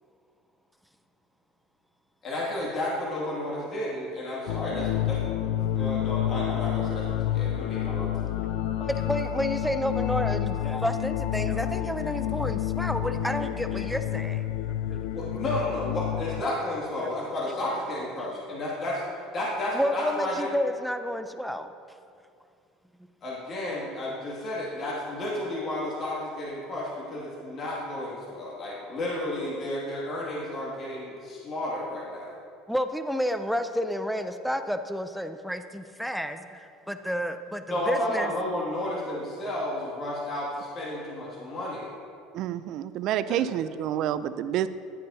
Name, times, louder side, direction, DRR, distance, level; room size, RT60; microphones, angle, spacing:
voice 1, 2.2-5.2 5.7-8.1 15.1-19.0 19.3-20.5 23.2-32.3 37.7-41.9 43.3-43.4, left 1 dB, 40° left, -5 dB, 2.2 m, -32 dB
sound 1, 4.5-16.4, left 12 dB, 75° left, 0.4 m, -29 dB
voice 2, 8.8-14.4 14.9-15.1 17.0-17.1 17.4-17.5 18.0-18.6 19.7-22.0 32.7-38.3, equal, ahead, 8 dB, 0.5 m, -30 dB
voice 3, 42.3-44.7, right 11 dB, 60° right, 14 dB, 0.4 m, -28 dB
11.0 x 9.1 x 2.7 m, 2.4 s
supercardioid pair, 85°, 0 cm